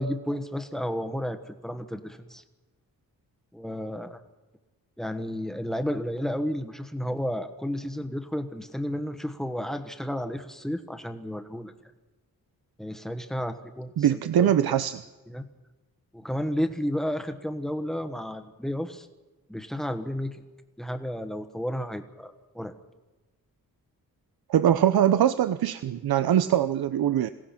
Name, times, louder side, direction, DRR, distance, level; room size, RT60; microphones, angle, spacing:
voice 1, 0.0-2.4 3.5-4.2 5.0-11.7 12.8-14.7 15.3-15.4 16.1-19.1 19.5-20.4 20.8-22.7, equal, ahead, 7 dB, 1.3 m, -32 dB
voice 2, 14.0-15.0 24.5-27.3, right 10 dB, 90° right, 11 dB, 0.8 m, -22 dB
27.0 x 17.5 x 5.9 m, 1.2 s
wide cardioid pair, 175°, 36 cm